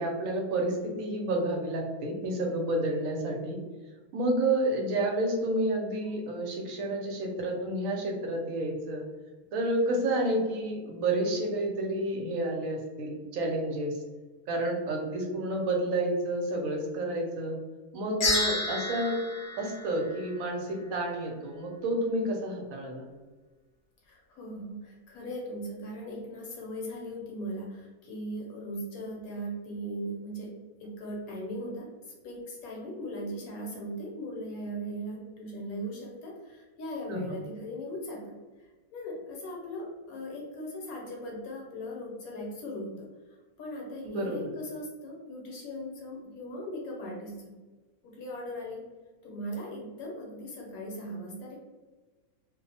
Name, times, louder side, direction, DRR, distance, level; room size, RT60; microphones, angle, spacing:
voice 1, 0.0-3.6 4.1-9.0 9.5-14.0 14.5-17.6 17.9-19.2 19.6-23.1 37.1-37.4 44.0-44.5, right 1 dB, 70° right, 1 dB, 0.9 m, -30 dB
sound 1, 18.2-20.7, left 2 dB, 55° left, 0.6 m, -31 dB
voice 2, 24.0-47.5 48.0-48.9 49.2-51.6, equal, 75° left, -1 dB, 1.0 m, -39 dB
2.5 x 2.0 x 2.7 m, 1.3 s
omnidirectional pair, 1.6 m